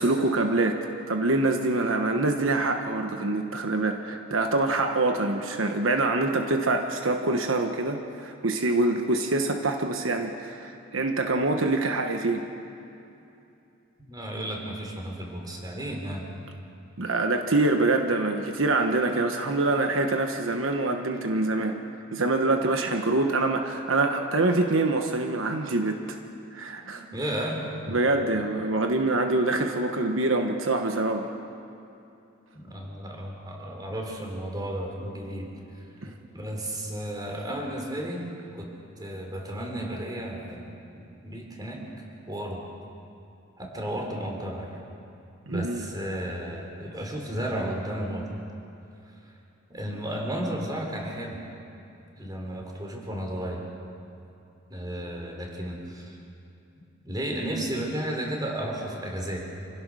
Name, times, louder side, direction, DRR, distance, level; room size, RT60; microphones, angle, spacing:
voice 1, 0.0-12.5 17.0-21.8 22.1-26.2 26.5-27.0 27.9-31.3 45.5-45.9, right 2 dB, 75° right, 5 dB, 1.2 m, -25 dB
voice 2, 14.1-16.2 26.9-27.6 27.9-28.0 32.5-35.5 35.7-35.8 36.3-38.2 38.5-38.7 39.0-41.8 42.3-42.6 43.6-44.8 45.5-48.3 49.7-51.4 52.2-53.6 54.7-56.2 57.0-59.4, right 1 dB, 20° right, 0 dB, 3.5 m, -33 dB
26.5 x 16.0 x 6.4 m, 2.7 s
head